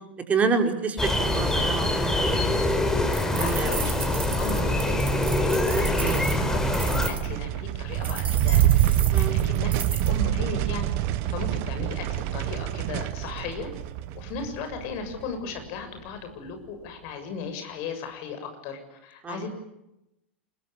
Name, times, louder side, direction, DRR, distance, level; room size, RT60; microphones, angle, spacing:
voice 1, 0.3-2.4 3.2-3.8 6.0-6.2 9.1-9.5 19.2-19.5, right 5 dB, 25° right, 5 dB, 4.8 m, -28 dB
sound 1, 1.0-7.1, left 1 dB, 10° left, 4.8 m, -24 dB
sound 2, 3.1-7.3 8.0-10.1, right 5 dB, 75° right, 3.4 m, -36 dB
voice 2, 3.2-3.9 4.4-9.7 10.0-10.9 11.2-13.7 14.1-19.5, left 5 dB, 50° left, 6 dB, 7.2 m, -36 dB
sound 3, 5.3-15.8, right 13 dB, 45° right, 1.6 m, -26 dB
25.5 x 22.5 x 9.9 m, 0.87 s
figure-of-eight pair, 85°, 6 cm